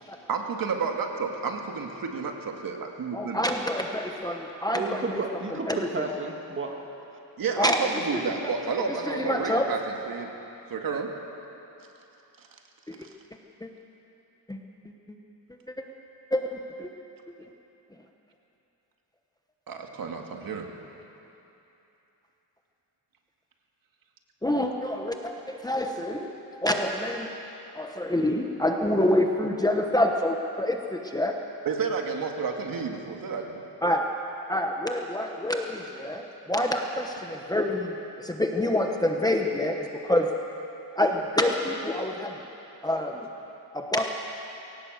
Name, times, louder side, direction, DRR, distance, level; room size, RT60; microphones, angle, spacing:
voice 1, 0.3-3.4 7.4-10.3 10.7-11.1 13.0-13.1 19.7-20.7 31.7-33.6, right 5 dB, 55° right, 2 dB, 2.0 m, -31 dB
voice 2, 3.1-5.2 5.7-5.8 7.6-7.8 8.1-8.5 9.1-9.7 12.9-13.0 13.6-13.7 14.5-14.6 16.3-16.9 24.4-26.3 26.6-27.3 27.7-31.4 33.8-34.1 34.5-40.3 41.0-42.3 42.8-43.3 43.7-44.0, left 1 dB, 10° left, 2 dB, 1.0 m, -27 dB
voice 3, 4.7-6.8, right 3 dB, 30° right, 2 dB, 2.1 m, -32 dB
20.5 x 18.0 x 8.0 m, 3.0 s
wide cardioid pair, 150°, 41 cm